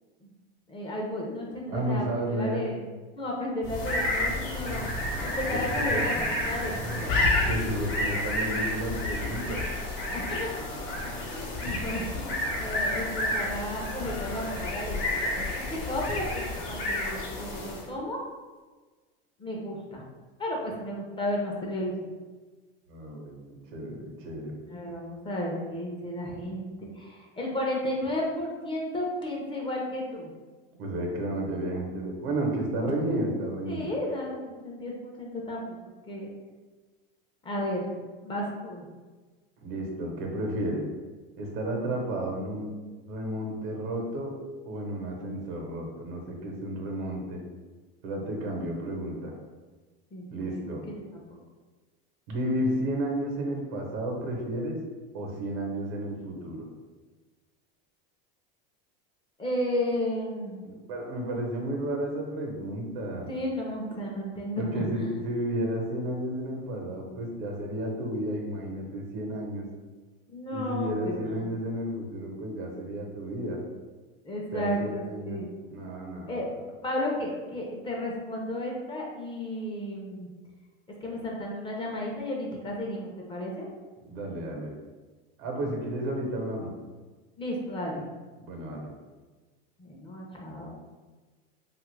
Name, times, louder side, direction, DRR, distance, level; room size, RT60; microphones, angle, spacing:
voice 1, 0.7-2.8 3.1-7.1 10.1-10.5 11.0-18.2 19.4-20.0 20.4-22.1 24.7-30.3 33.7-35.8 36.1-36.3 37.4-38.0 38.2-38.9 50.1-50.4 50.9-51.2 59.4-60.7 63.3-65.1 70.3-71.5 74.2-75.5 76.3-76.4 76.8-80.3 81.0-83.7 87.4-88.1 89.8-90.7, left 1 dB, 20° left, -2 dB, 0.6 m, -33 dB
voice 2, 1.7-2.6 5.5-6.0 7.4-9.6 22.9-24.6 30.8-33.9 39.6-40.8 41.4-42.7 43.1-44.3 44.7-47.4 48.0-49.3 50.3-50.9 52.3-54.8 55.1-56.7 60.6-63.3 64.6-69.7 70.5-73.6 74.5-75.4 75.7-76.4 84.0-84.7 85.4-86.7 88.4-88.9, right 1 dB, 80° right, 1 dB, 0.9 m, -32 dB
sound 1, 3.6-17.9, left 1 dB, 45° left, 0.8 m, -30 dB
2.9 x 2.4 x 3.2 m, 1.3 s
supercardioid pair, 120°, 29 cm